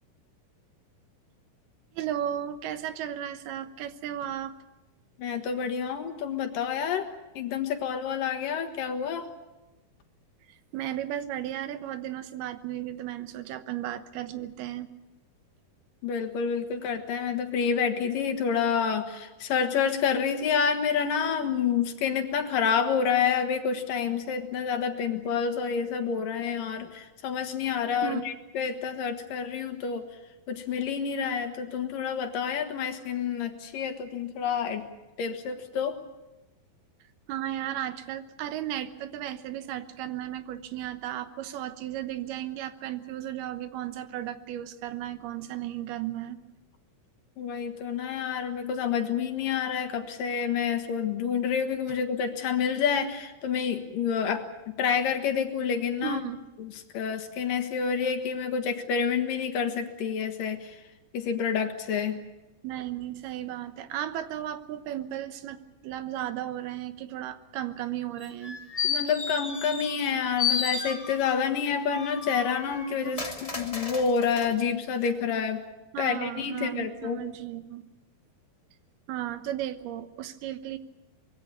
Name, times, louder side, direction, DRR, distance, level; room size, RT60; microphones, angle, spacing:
voice 1, 1.9-4.5 10.7-14.9 28.0-28.2 37.3-46.4 56.0-56.5 62.6-65.6 65.8-68.6 73.0-73.3 75.9-77.9 79.1-80.8, right 12 dB, 85° right, 10 dB, 3.1 m, -35 dB
voice 2, 5.2-7.1 7.3-9.3 16.0-30.1 30.5-34.8 35.2-36.0 47.4-54.4 54.8-56.2 56.6-60.8 61.1-62.2 68.8-75.6 76.0-77.2, left 7 dB, 65° left, 6 dB, 3.1 m, -28 dB
sound 1, 68.2-70.1 70.4-71.4 71.9-74.5 75.0-75.1, left 5 dB, 25° left, 0.8 m, -32 dB
24.5 x 21.5 x 6.9 m, 1.0 s
omnidirectional pair, 4.4 m